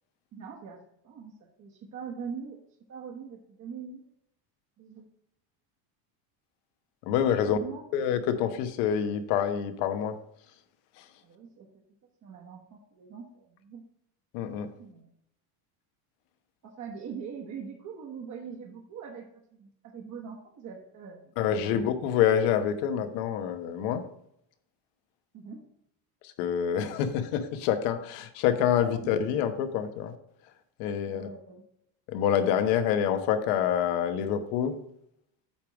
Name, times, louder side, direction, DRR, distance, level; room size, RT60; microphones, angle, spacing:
voice 1, 0.3-1.3 1.6-2.6 2.9-4.0 4.8-5.0 7.4-8.1 11.2-11.7 12.2-13.8 14.8-15.1 16.6-19.2 19.5-22.0 25.3-25.6 28.7-29.1 31.0-31.6, right 6 dB, 35° right, 0 dB, 1.2 m, -42 dB
voice 2, 7.0-7.6 7.9-10.2 11.0-11.1 14.3-14.7 21.4-24.0 26.2-30.1 30.8-31.3 32.1-34.8, left 9 dB, 75° left, 9 dB, 1.2 m, -27 dB
8.4 x 3.5 x 6.1 m, 0.74 s
cardioid pair, 140°, 50 cm